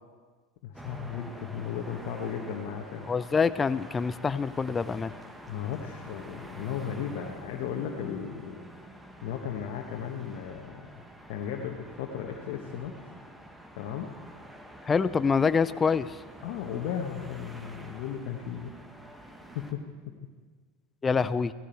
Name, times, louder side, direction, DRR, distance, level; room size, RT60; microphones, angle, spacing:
voice 1, 0.6-3.1 5.5-8.6 9.2-10.9 11.3-13.0 13.7-14.1 16.4-18.7 19.5-19.8, left 8 dB, 60° left, 1 dB, 1.5 m, -35 dB
sound 1, 0.7-19.7, right 1 dB, 5° right, 1.6 m, -47 dB
voice 2, 3.1-5.1 14.9-16.2 21.0-21.5, left 5 dB, 20° left, 15 dB, 0.6 m, -26 dB
16.5 x 15.0 x 4.6 m, 1.5 s
hypercardioid pair, 90°, 0 cm